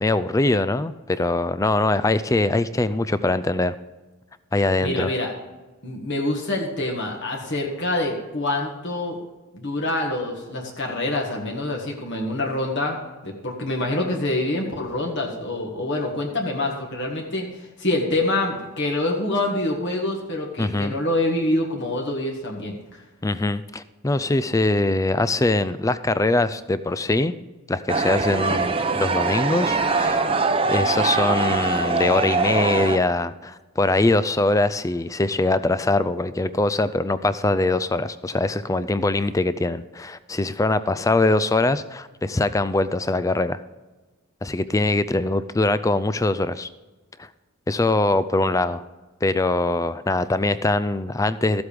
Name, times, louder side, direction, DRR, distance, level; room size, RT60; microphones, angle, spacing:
voice 1, 0.0-3.7 4.5-5.1 20.6-20.9 23.2-27.3 27.7-30.3 30.7-43.6 44.4-46.7 47.2-47.3 47.7-48.8 49.2-51.6, left 2 dB, 15° left, 14 dB, 0.4 m, -22 dB
voice 2, 4.8-5.3 5.8-9.2 9.5-13.0 13.2-23.0, left 1 dB, 50° left, 0 dB, 1.7 m, -26 dB
sound 1, 27.9-33.0, right 3 dB, 25° right, 0.7 m, -22 dB
14.0 x 8.1 x 5.1 m, 1.2 s
head